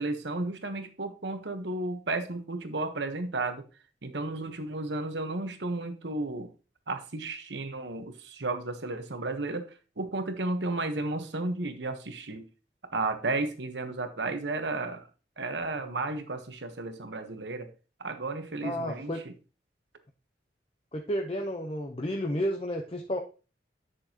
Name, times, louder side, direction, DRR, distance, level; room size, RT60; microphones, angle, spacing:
voice 1, 0.0-3.6 4.0-6.5 6.9-12.5 12.9-15.0 15.4-17.7 18.0-19.3, right 2 dB, 85° right, 8 dB, 1.2 m, -33 dB
voice 2, 18.6-19.3 20.9-23.2, equal, 30° left, 3 dB, 0.8 m, -31 dB
10.5 x 6.3 x 2.9 m, 0.34 s
head